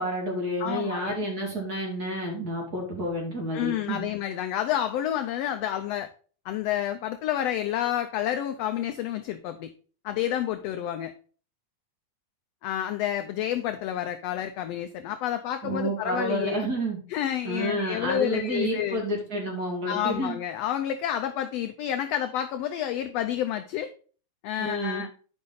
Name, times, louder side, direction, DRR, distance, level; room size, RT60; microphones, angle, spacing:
voice 1, 0.0-4.1 15.6-17.0 17.4-20.4 24.6-25.0, right 1 dB, 30° right, -1 dB, 2.7 m, -30 dB
voice 2, 0.6-1.2 3.5-6.1 6.4-9.7 10.0-11.1 12.6-16.7 17.1-19.0 19.9-23.9 24.4-25.1, left 11 dB, 85° left, 8 dB, 1.4 m, -29 dB
10.0 x 5.3 x 4.0 m, 0.41 s
omnidirectional pair, 3.5 m